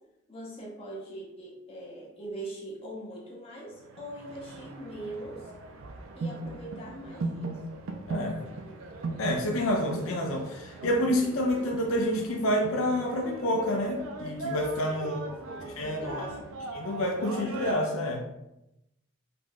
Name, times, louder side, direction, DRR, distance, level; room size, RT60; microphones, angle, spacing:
voice 1, 0.3-5.5 6.2-7.6 14.9-16.5, right 1 dB, 25° left, -3 dB, 0.6 m, -42 dB
sound 1, 3.7-17.7, right 3 dB, 70° right, 0.3 m, -38 dB
voice 2, 8.1-8.4 9.2-15.1 15.8-16.3 16.7-18.2, left 1 dB, 70° left, 2 dB, 0.4 m, -28 dB
2.5 x 2.1 x 3.2 m, 0.90 s
head